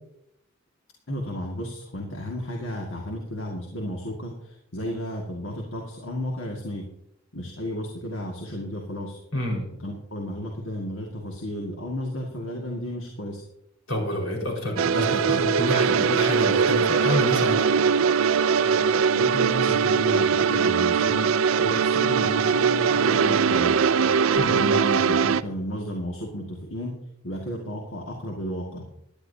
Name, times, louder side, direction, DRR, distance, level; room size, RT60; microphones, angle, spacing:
voice 1, 1.1-4.3 4.7-6.8 7.3-9.2 9.8-13.4 19.1-23.8 24.4-26.9 27.2-28.8, equal, 70° left, -1 dB, 1.9 m, -33 dB
voice 2, 9.3-9.7 13.9-17.7 24.4-24.5, left 1 dB, 85° left, -1 dB, 4.7 m, -28 dB
sound 1, 14.8-25.4, right 6 dB, 90° right, 0.5 m, -21 dB
17.0 x 11.0 x 2.8 m, 0.78 s
head